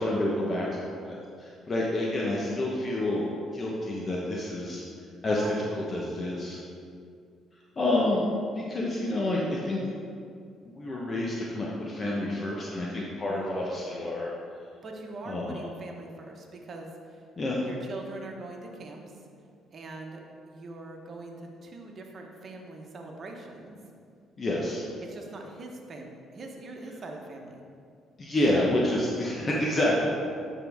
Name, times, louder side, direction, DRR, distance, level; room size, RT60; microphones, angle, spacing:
voice 1, 0.0-3.2 3.5-4.8 5.2-6.6 7.8-8.2 8.5-9.8 10.6-14.3 15.3-15.6 17.4-17.6 24.4-24.8 28.2-30.1, left 1 dB, 35° left, -4 dB, 1.0 m, -28 dB
voice 2, 14.8-17.2 17.6-19.1 19.7-20.2 20.5-23.8 25.0-27.6, right 2 dB, 45° right, 1 dB, 1.0 m, -42 dB
10.0 x 3.8 x 3.6 m, 2.3 s
supercardioid pair, 75°, 0 cm